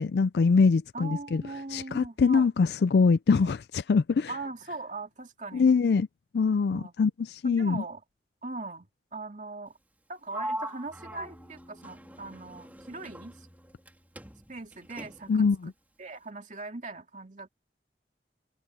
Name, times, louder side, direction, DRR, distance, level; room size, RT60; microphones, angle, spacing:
voice 1, 0.0-1.4 1.7-4.3 5.5-6.1 6.3-7.8 15.3-15.7, left 5 dB, 65° left, 0.4 m, -23 dB
voice 2, 0.9-2.5 3.4-3.5 4.3-5.7 6.7-6.9 7.4-8.0 8.4-9.7 10.1-13.5 14.5-15.7 16.0-17.5, right 3 dB, 45° right, 2.5 m, -40 dB
Sliding door, 10.3-13.9 14.2-15.5, right 1 dB, 10° right, 3.2 m, -41 dB
sound 1, 10.9-14.6, equal, 15° left, 4.5 m, -54 dB
head